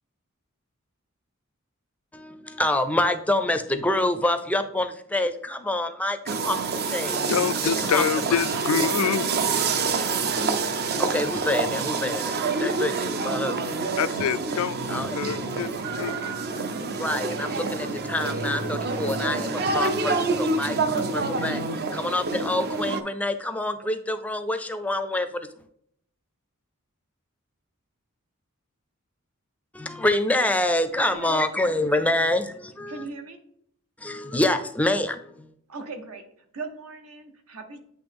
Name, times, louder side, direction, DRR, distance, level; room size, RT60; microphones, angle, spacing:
voice 1, 2.1-7.2 7.6-8.5 11.0-13.9 14.9-15.2 17.0-25.5 29.7-33.1 34.0-35.5, left 1 dB, 5° left, 0.4 m, -27 dB
sound 1, 6.3-23.0, right 4 dB, 50° right, 0.5 m, -27 dB
voice 2, 7.3-9.3 14.0-16.4, left 7 dB, 70° left, 0.3 m, -26 dB
voice 3, 31.1-31.7 32.9-33.4 35.7-36.2 36.5-37.8, right 4 dB, 80° right, 1.0 m, -38 dB
8.7 x 3.1 x 3.5 m
head